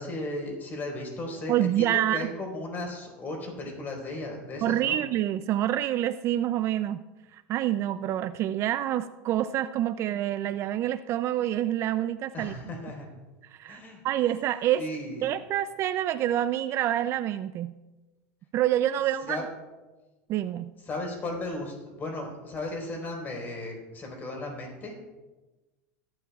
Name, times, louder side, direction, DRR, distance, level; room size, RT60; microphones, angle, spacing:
voice 1, 0.0-5.0 12.3-13.1 13.7-14.0 14.8-15.3 19.2-19.4 20.8-25.0, left 2 dB, 25° left, 1 dB, 4.3 m, -35 dB
voice 2, 1.5-2.3 4.6-7.0 7.3-12.5 13.5-14.8 15.2-17.7 18.5-19.4 20.3-20.7, right 12 dB, 40° right, 13 dB, 0.4 m, -27 dB
21.0 x 12.0 x 2.4 m, 1.2 s
supercardioid pair, 130°, 7 cm